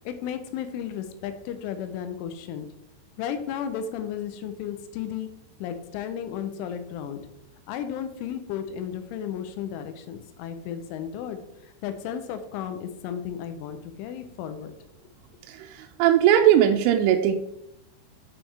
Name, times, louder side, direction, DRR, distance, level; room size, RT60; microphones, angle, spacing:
voice 1, 0.1-2.7 3.2-5.3 5.6-7.2 7.7-14.7, left 8 dB, 85° left, 9 dB, 3.2 m, -34 dB
voice 2, 15.5-17.3, right 10 dB, 85° right, 4 dB, 3.0 m, -19 dB
8.4 x 6.1 x 3.3 m, 0.81 s
omnidirectional pair, 5.5 m